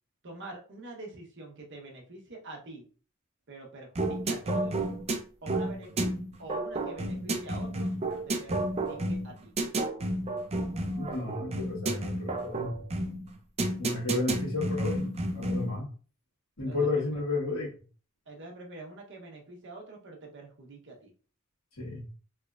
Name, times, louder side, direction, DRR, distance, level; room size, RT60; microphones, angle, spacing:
voice 1, 0.2-2.9 3.5-4.8 5.4-6.1 6.4-9.5 16.7-17.2 18.3-21.1, right 2 dB, 60° right, 0 dB, 1.0 m, -45 dB
sound 1, 3.9-15.8, right 1 dB, 30° right, 0.4 m, -31 dB
voice 2, 11.0-12.7 13.8-15.8 16.6-17.7 21.8-22.0, left 3 dB, 70° left, -4 dB, 1.8 m, -32 dB
3.4 x 3.2 x 2.4 m, 0.39 s
head